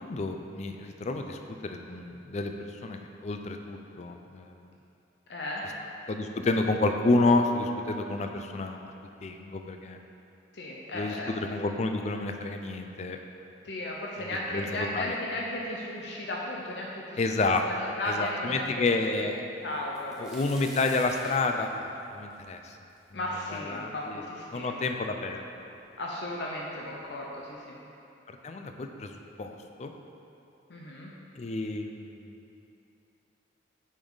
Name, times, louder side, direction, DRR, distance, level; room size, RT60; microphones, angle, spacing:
voice 1, 0.0-4.6 6.1-8.8 9.2-10.0 10.9-13.2 14.2-15.2 17.2-17.6 18.0-19.4 20.2-22.8 23.1-23.2 23.5-24.2 24.5-25.4 28.3-29.1 29.4-29.9 31.4-32.4, left 2 dB, 35° left, 5 dB, 0.4 m, -30 dB
voice 2, 5.3-5.6 10.5-11.6 13.6-17.4 17.6-19.3 19.6-20.4 23.1-24.7 26.0-27.8 30.7-31.1, left 1 dB, 70° left, -2 dB, 0.7 m, -35 dB
sound 1, 19.7-23.5 24.0-24.1 24.9-25.0 25.2-25.9 26.8-26.9 27.3-27.5, right 1 dB, 5° right, 0.9 m, -48 dB
7.0 x 5.2 x 3.9 m, 2.8 s
head